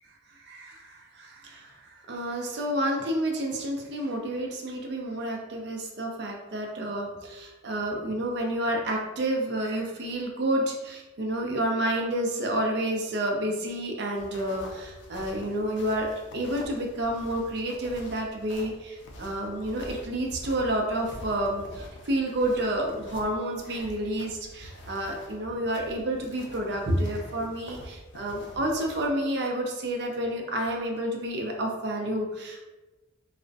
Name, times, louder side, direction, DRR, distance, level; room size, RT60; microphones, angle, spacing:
voice 1, 0.4-16.1 16.3-32.6, right 1 dB, 55° right, 1 dB, 0.4 m, -30 dB
sound 1, 14.1-29.1, left 1 dB, 65° left, 0.4 m, -46 dB
2.4 x 2.0 x 2.5 m, 1.1 s
head